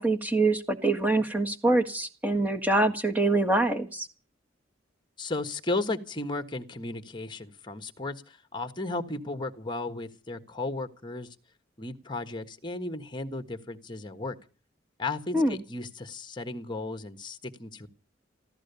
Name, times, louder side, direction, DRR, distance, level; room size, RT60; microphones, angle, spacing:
voice 1, 0.0-4.1 15.3-15.6, right 2 dB, 10° right, 4 dB, 1.6 m, -25 dB
voice 2, 5.2-11.3 11.8-14.4 15.0-17.9, left 2 dB, 25° left, 9 dB, 1.4 m, -35 dB
14.5 x 14.0 x 6.9 m, 0.38 s
head